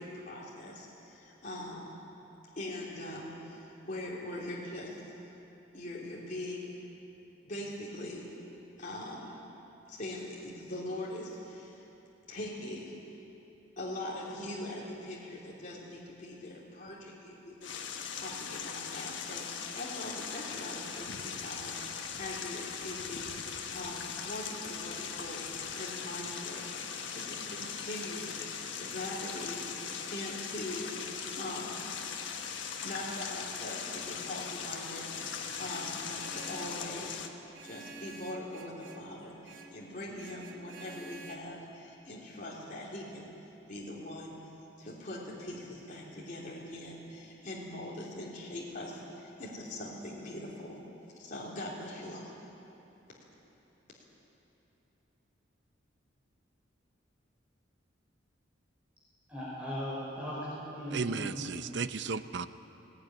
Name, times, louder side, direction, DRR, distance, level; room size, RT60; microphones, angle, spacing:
voice 1, 0.0-1.9 2.5-5.1 5.7-6.7 7.4-8.3 8.8-9.3 9.9-11.9 12.3-13.0 13.8-25.5 25.7-28.3 28.7-30.9 31.3-31.8 32.6-37.2 37.6-43.3 43.7-44.4 44.8-50.8 51.2-52.3, left 1 dB, 45° left, -5 dB, 3.3 m, -42 dB
sound 1, 17.6-37.3, left 6 dB, 70° left, 1.4 m, -39 dB
Vehicle horn car horn honking, 35.4-36.8 37.5-39.1 39.4-39.8 40.2-41.4, right 2 dB, 85° right, 2.1 m, -50 dB
voice 2, 59.3-61.6, equal, 5° right, -7 dB, 4.7 m, -38 dB
voice 3, 60.9-62.5, right 5 dB, 65° right, 12 dB, 0.7 m, -34 dB
19.0 x 18.0 x 9.7 m, 3.0 s
head